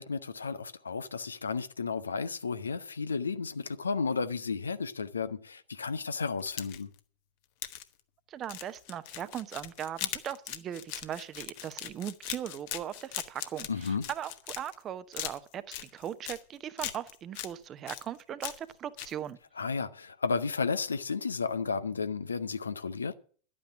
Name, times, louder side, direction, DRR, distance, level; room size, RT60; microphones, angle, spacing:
voice 1, 0.0-6.9 13.7-14.0 19.6-23.1, left 5 dB, 75° left, 0.8 m, -33 dB
sound 1, 6.4-7.0 7.6-7.8 8.4-14.8 15.1-16.4 16.8-17.5 17.9-18.7 19.0-19.1, left 13 dB, 50° left, 1.1 m, -39 dB
voice 2, 8.3-19.4, right 10 dB, 30° right, 0.9 m, -39 dB
11.5 x 8.8 x 7.3 m
figure-of-eight pair, 90°, 0 cm